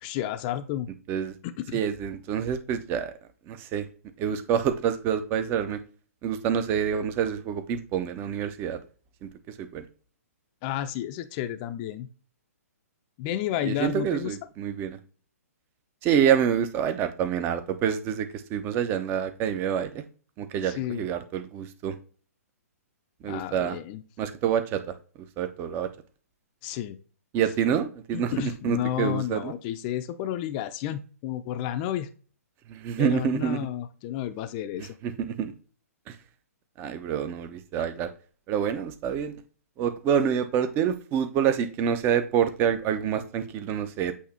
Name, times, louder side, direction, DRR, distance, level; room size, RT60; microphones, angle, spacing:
voice 1, 0.0-0.9 1.4-1.8 10.6-12.1 13.2-14.4 20.7-21.1 23.2-24.0 26.6-27.0 28.1-32.1 33.0-35.0, left 12 dB, 35° left, 10 dB, 0.6 m, -31 dB
voice 2, 1.7-3.1 3.5-3.9 4.2-5.8 6.2-8.8 9.2-9.3 9.6-9.8 13.6-15.0 16.0-20.0 20.4-22.0 23.2-23.8 24.2-24.8 25.4-25.9 27.3-29.5 32.7-33.7 34.8-35.5 36.1-36.2 36.8-38.1 38.5-39.4 39.8-44.1, right 8 dB, 25° right, 9 dB, 0.8 m, -27 dB
8.4 x 2.9 x 4.3 m, 0.38 s
hypercardioid pair, 130°, 9 cm